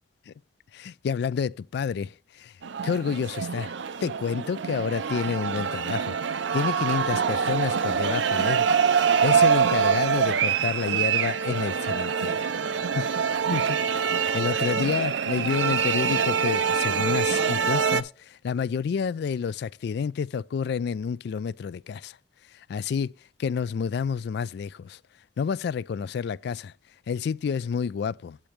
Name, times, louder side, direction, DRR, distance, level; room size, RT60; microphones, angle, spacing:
voice 1, 0.7-2.5 2.8-3.7 4.0-8.7 9.2-12.5 13.0-22.2 22.5-23.1 23.4-25.0 25.4-26.7 27.1-28.4, left 6 dB, 60° left, 0.3 m, -29 dB
sound 1, 2.6-18.0, right 6 dB, 75° right, 0.5 m, -25 dB
8.9 x 8.6 x 3.1 m
head